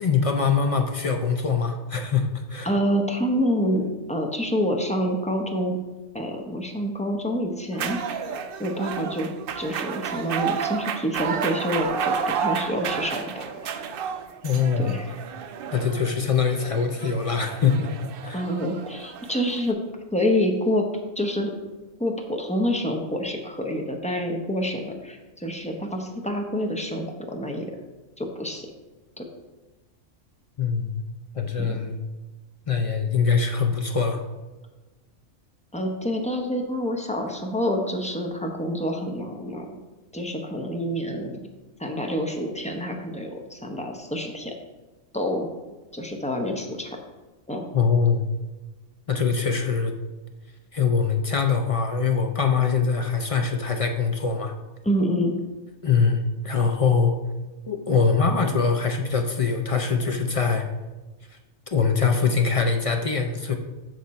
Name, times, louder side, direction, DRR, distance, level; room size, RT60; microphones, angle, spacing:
voice 1, 0.0-2.7 14.4-14.9 15.7-18.0 18.2-18.4 30.6-31.0 31.3-32.0 32.7-34.2 47.7-48.3 49.1-49.9 50.7-54.5 55.8-57.1 57.7-60.7 61.7-63.5, left 5 dB, 50° left, 4 dB, 0.4 m, -23 dB
voice 2, 2.6-5.8 6.1-8.0 8.6-13.6 14.8-15.1 18.3-19.8 20.1-20.9 21.2-21.5 22.0-27.7 28.2-28.7 29.2-29.3 31.6-31.8 35.7-39.8 40.1-41.5 41.8-44.5 45.1-45.5 45.9-47.0 47.5-47.7 54.8-55.4, equal, 5° left, 2 dB, 0.6 m, -27 dB
sound 1, 7.7-19.7, right 7 dB, 60° right, 0.6 m, -31 dB
6.7 x 6.4 x 4.2 m, 1.2 s
omnidirectional pair, 1.3 m